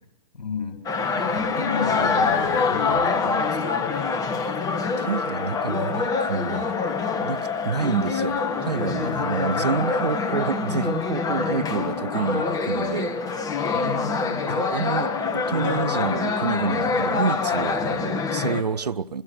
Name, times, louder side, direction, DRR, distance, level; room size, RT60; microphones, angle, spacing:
voice 1, 0.3-0.8 1.2-4.1 9.0-9.3 13.7-14.6, left 5 dB, 75° left, 3.8 m, -33 dB
sound 1, 0.9-18.6, left 4 dB, 15° left, 2.1 m, -25 dB
voice 2, 5.0-6.8 7.2-7.4 7.6-13.1 14.6-19.2, right 5 dB, 80° right, 0.9 m, -28 dB
28.5 x 25.0 x 6.4 m
figure-of-eight pair, 120°, 20 cm